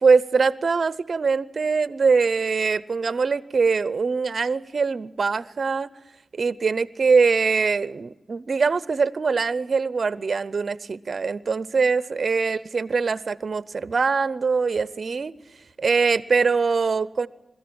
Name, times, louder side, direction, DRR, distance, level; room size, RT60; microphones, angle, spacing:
voice 1, 0.0-5.9 6.3-15.3 15.8-17.3, right 4 dB, 50° right, 0.6 m, -22 dB
22.0 x 14.0 x 8.6 m
wide cardioid pair, 150°, 0 cm